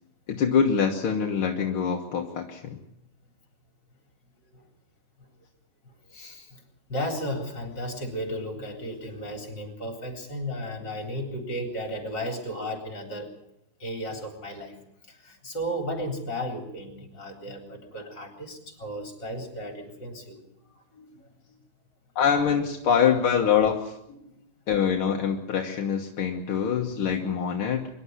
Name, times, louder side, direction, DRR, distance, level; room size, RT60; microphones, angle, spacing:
voice 1, 0.3-2.8 22.2-23.9 24.7-27.9, left 7 dB, 80° left, 2 dB, 2.2 m, -24 dB
voice 2, 5.8-6.6 6.9-13.3 13.8-14.8 15.1-21.6 24.1-24.3, equal, 55° left, 2 dB, 4.4 m, -35 dB
24.5 x 11.5 x 9.6 m, 0.82 s
omnidirectional pair, 2.3 m